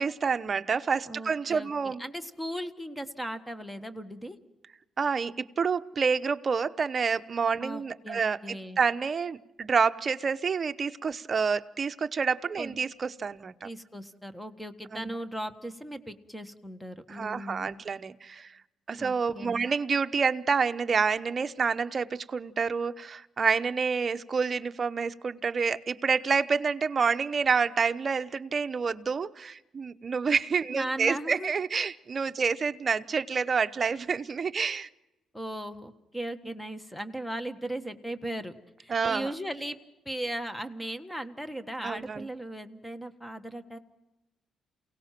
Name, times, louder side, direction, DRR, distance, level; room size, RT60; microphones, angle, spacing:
voice 1, 0.0-2.0 5.0-8.4 8.8-13.7 14.9-15.1 17.1-18.5 18.9-34.9 38.9-39.3 41.8-42.3, right 5 dB, 35° right, 0.8 m, -28 dB
voice 2, 1.0-4.4 7.6-8.8 12.6-12.8 13.6-17.8 19.0-19.7 30.7-31.5 35.3-39.8 40.0-43.8, right 1 dB, 5° left, 1.5 m, -37 dB
28.5 x 18.0 x 6.0 m
cardioid pair, 120°, 0 cm